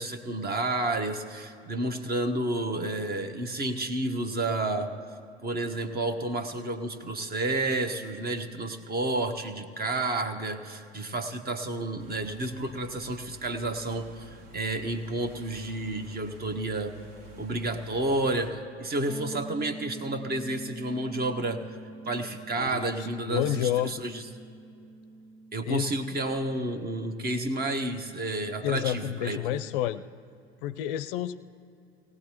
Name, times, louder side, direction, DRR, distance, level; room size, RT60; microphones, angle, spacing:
voice 1, 0.0-4.9 5.4-16.9 17.4-21.6 22.1-24.2 25.5-29.6, right 2 dB, 30° right, 9 dB, 1.1 m, -30 dB
sound 1, 12.0-18.5, right 2 dB, 50° right, 1.7 m, -50 dB
sound 2, 19.1-28.8, right 3 dB, 10° right, 0.3 m, -46 dB
voice 2, 22.6-24.0 25.7-25.9 28.6-30.0 30.6-31.5, left 12 dB, 55° left, 13 dB, 0.5 m, -30 dB
18.5 x 18.0 x 3.0 m, 2.6 s
figure-of-eight pair, 70°, 33 cm